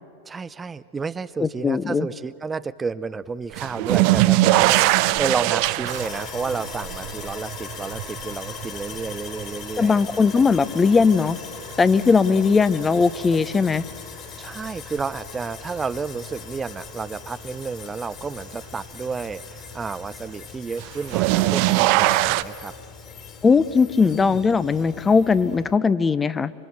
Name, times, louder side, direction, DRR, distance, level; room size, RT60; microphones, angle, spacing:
voice 1, 0.3-10.0 14.4-22.7 24.0-24.4, right 5 dB, 20° right, 14 dB, 0.5 m, -31 dB
voice 2, 1.4-2.1 9.8-11.4 11.8-13.8 23.4-26.5, left 5 dB, 20° left, 16 dB, 0.7 m, -19 dB
sound 1, 3.6-10.6 11.0-11.7 13.3-13.4 15.0-15.1 20.8-22.4, right 18 dB, 55° right, 0.7 m, -21 dB
Sawing, 5.8-25.8, left 7 dB, 40° left, 3.3 m, -40 dB
25.5 x 24.0 x 7.9 m, 2.6 s
hypercardioid pair, 95°, 0 cm